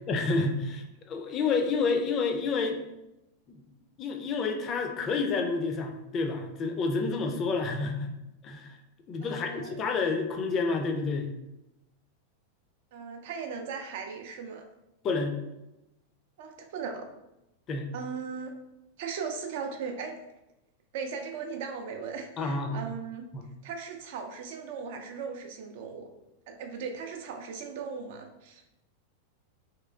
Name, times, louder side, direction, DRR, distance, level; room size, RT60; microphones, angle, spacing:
voice 1, 0.1-2.8 4.0-8.1 8.4-8.8 9.1-11.3 15.0-15.4 17.7-17.9 22.4-22.8 23.3-23.4, left 4 dB, 30° left, 4 dB, 0.4 m, -29 dB
voice 2, 9.2-9.8 12.9-14.7 16.4-17.1 17.9-18.5 19.0-20.2 20.9-23.3 23.6-26.1 26.5-28.6, right 5 dB, 50° right, 5 dB, 0.4 m, -38 dB
3.0 x 2.9 x 2.4 m, 0.91 s
figure-of-eight pair, 90°, 0 cm